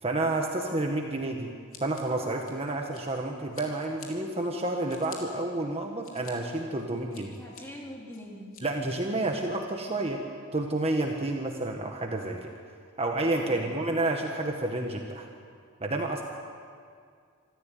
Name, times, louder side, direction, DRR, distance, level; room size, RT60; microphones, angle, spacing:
voice 1, 0.0-1.5 1.8-7.3 8.6-10.2 10.5-12.5 13.0-15.3 15.8-16.2, right 2 dB, 30° right, 2 dB, 1.6 m, -30 dB
Scissors, 1.7-3.2 3.5-4.1 4.6-5.2 5.7-6.3 6.8-7.6 8.1-8.6, left 7 dB, 75° left, 3.5 m, -48 dB
voice 2, 7.4-8.5 13.4-13.8, left 1 dB, 10° left, -2 dB, 3.4 m, -44 dB
26.0 x 14.0 x 9.3 m, 2.2 s
head